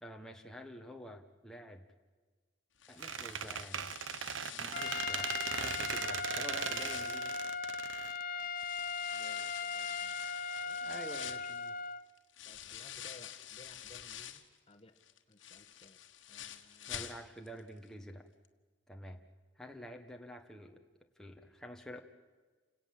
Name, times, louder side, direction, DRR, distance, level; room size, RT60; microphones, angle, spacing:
voice 1, 0.0-1.8 2.9-4.0 4.5-7.4 10.8-11.8 16.9-18.3 18.9-19.2 19.5-20.8 21.2-22.0, equal, 5° left, 2 dB, 1.3 m, -49 dB
sound 1, 2.8-8.1 8.6-14.6 15.0-17.6 17.9-18.0 18.4-18.5, left 10 dB, 80° left, 1.5 m, -48 dB
Squeak, 3.0-8.8, right 8 dB, 90° right, 0.8 m, -39 dB
Trumpet, 4.7-12.0, left 5 dB, 45° left, 0.7 m, -38 dB
voice 2, 9.1-10.2 10.6-11.3 12.4-15.0 15.3-16.0 16.3-17.0, left 2 dB, 30° left, 6 dB, 1.4 m, -59 dB
29.0 x 17.5 x 7.8 m, 1.4 s
head